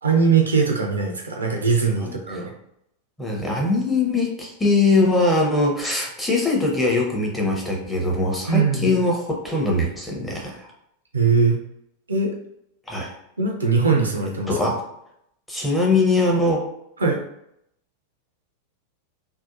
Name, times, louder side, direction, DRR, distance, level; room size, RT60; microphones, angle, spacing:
voice 1, 0.0-2.5 8.5-9.0 11.1-11.6 12.1-12.3 13.4-14.7 17.0-17.2, right 5 dB, 75° right, 1 dB, 0.5 m, -21 dB
voice 2, 2.0-2.4 3.2-10.7 12.9-13.1 14.5-14.8 15.5-16.6, left 2 dB, 5° left, -2 dB, 0.7 m, -22 dB
2.7 x 2.1 x 2.5 m, 0.76 s
figure-of-eight pair, 90°, 0 cm